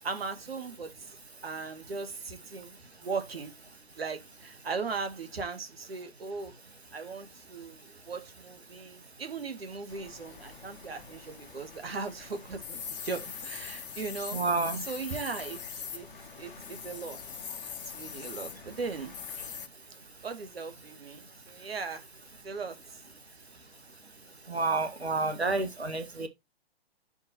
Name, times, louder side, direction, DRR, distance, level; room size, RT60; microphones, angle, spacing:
voice 1, 0.0-0.9 1.4-3.5 4.0-6.5 6.9-14.4 14.9-15.6 15.9-16.1 16.4-17.2 17.6-17.7 18.0-19.1 20.2-22.0 22.4-22.8, right 4 dB, 70° right, 2.0 m, -38 dB
sound 1, 9.9-19.7, left 7 dB, 55° left, 1.3 m, -42 dB
voice 2, 14.3-14.8 24.5-26.3, right 3 dB, 85° right, 1.8 m, -29 dB
6.3 x 5.7 x 4.5 m
figure-of-eight pair, 125°, 31 cm